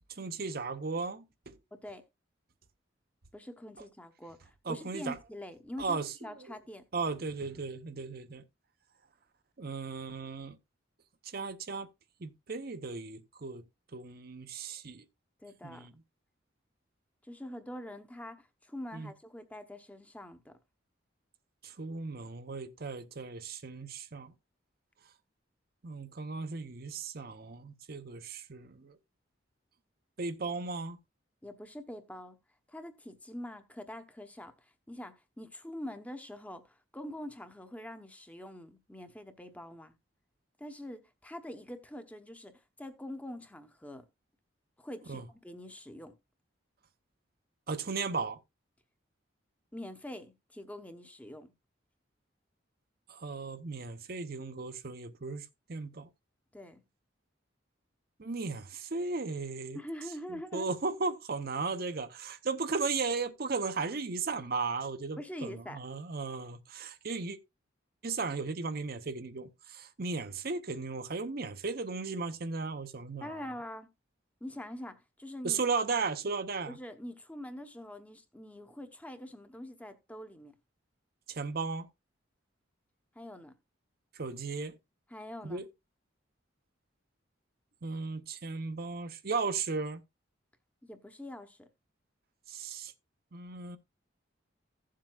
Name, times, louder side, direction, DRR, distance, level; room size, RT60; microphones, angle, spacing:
voice 1, 0.1-1.6 4.6-5.2 5.8-6.6 6.9-8.4 9.6-10.6 11.2-11.9 12.2-13.6 13.9-15.0 15.6-15.9 18.9-19.1 21.6-24.3 25.8-29.0 30.2-31.0 45.1-45.3 47.7-48.4 53.1-56.1 58.2-59.8 60.3-67.4 68.0-73.4 75.4-76.8 81.3-81.9 84.1-84.8 85.4-85.7 87.8-90.0 92.5-92.9 93.3-93.8, right 4 dB, 50° right, 0.8 m, -36 dB
voice 2, 1.7-2.0 3.3-6.8 15.4-15.9 17.2-20.5 31.4-32.4 32.7-39.9 40.6-44.1 44.8-46.1 49.7-51.5 56.5-56.8 59.7-60.7 65.2-65.8 73.2-73.9 74.4-75.6 76.7-80.5 83.1-83.5 85.1-85.7 90.8-91.7, left 1 dB, 10° left, 0.9 m, -44 dB
15.5 x 7.6 x 2.3 m
head